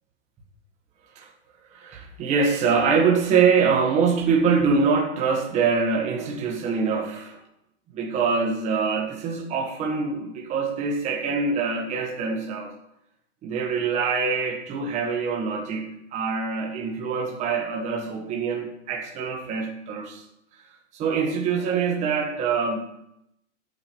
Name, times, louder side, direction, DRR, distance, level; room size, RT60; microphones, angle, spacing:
voice 1, 1.7-7.4 7.9-12.7 13.4-20.2 20.9-22.8, right 5 dB, 20° right, 0 dB, 1.5 m, -24 dB
9.3 x 6.0 x 4.6 m, 0.79 s
supercardioid pair, 165°, 37 cm